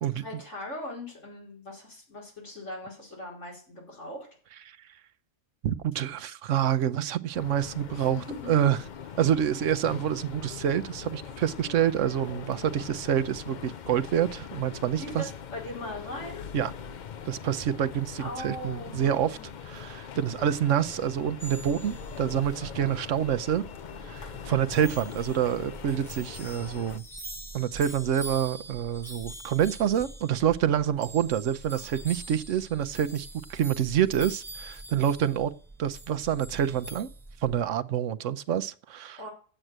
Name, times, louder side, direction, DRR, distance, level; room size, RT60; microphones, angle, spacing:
voice 1, 0.2-4.3 7.9-8.5 15.0-16.5 18.2-19.5 31.8-31.9 39.2-39.3, left 1 dB, 70° left, 5.0 m, -40 dB
voice 2, 5.6-8.2 8.5-8.8 9.1-15.2 16.5-16.7 17.3-19.4 19.7-23.6 24.0-27.0 27.5-35.5 35.8-37.1 37.4-39.3, right 9 dB, 75° right, 1.1 m, -27 dB
sound 1, 7.3-27.0, left 7 dB, 50° left, 0.6 m, -42 dB
sound 2, 21.4-37.7, right 2 dB, ahead, 1.4 m, -44 dB
8.9 x 8.0 x 7.4 m
omnidirectional pair, 1.3 m